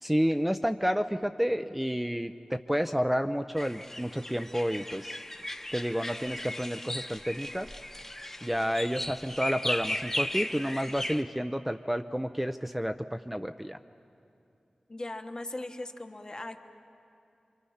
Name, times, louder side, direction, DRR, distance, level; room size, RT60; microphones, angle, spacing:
voice 1, 0.0-5.2 5.7-7.7 8.4-13.8, equal, 5° right, 7 dB, 0.5 m, -30 dB
sound 1, 3.6-11.2, left 1 dB, 15° left, 1.0 m, -36 dB
voice 2, 14.9-16.6, left 2 dB, 35° left, 6 dB, 1.2 m, -39 dB
28.0 x 24.0 x 5.7 m, 2.7 s
wide cardioid pair, 75°, 2 cm